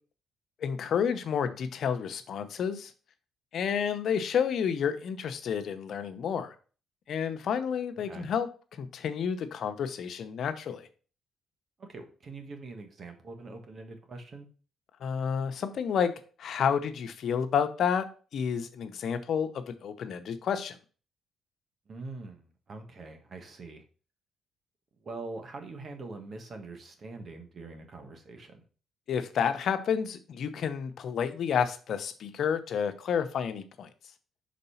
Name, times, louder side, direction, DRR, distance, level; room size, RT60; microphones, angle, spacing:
voice 1, 0.6-2.9 3.5-6.5 7.1-8.5 8.8-10.9 15.0-16.1 16.4-18.1 18.3-20.8 29.1-33.9, left 7 dB, 65° left, 9 dB, 0.7 m, -30 dB
voice 2, 11.8-14.5 21.9-23.8 25.0-28.6, right 3 dB, 45° right, 6 dB, 1.4 m, -43 dB
5.2 x 3.9 x 5.6 m, 0.38 s
cardioid pair, 90°, 0 cm